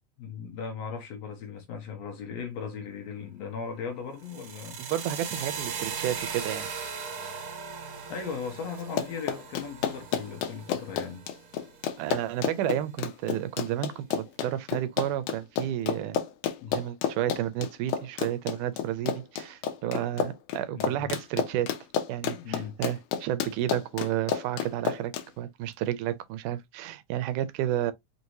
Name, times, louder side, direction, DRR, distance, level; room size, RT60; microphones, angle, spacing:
voice 1, 0.2-4.8 8.1-11.3 16.6-16.8 20.7-21.1 22.3-22.8, left 6 dB, 65° left, 1.9 m, -37 dB
sound 1, 4.2-12.2, right 6 dB, 60° right, 2.3 m, -39 dB
voice 2, 4.8-6.7 12.0-16.2 16.7-21.7 22.1-27.9, right 12 dB, 90° right, 2.1 m, -31 dB
Run, 8.8-25.3, left 8 dB, 85° left, 2.2 m, -31 dB
5.3 x 2.7 x 2.9 m
omnidirectional pair, 3.5 m